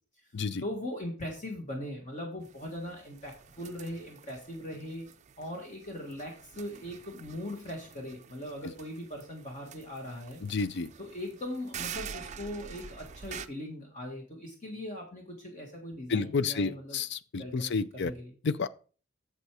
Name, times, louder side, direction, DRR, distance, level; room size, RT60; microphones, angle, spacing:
voice 1, 0.6-5.0 5.4-10.4 11.0-17.0 17.4-18.3, left 1 dB, 35° left, 1.7 m, -40 dB
sound 1, 2.4-13.5, right 7 dB, 35° right, 0.5 m, -47 dB
voice 2, 10.4-10.9 16.1-18.1 18.4-18.7, left 4 dB, 55° left, 0.5 m, -30 dB
8.1 x 7.2 x 4.8 m
head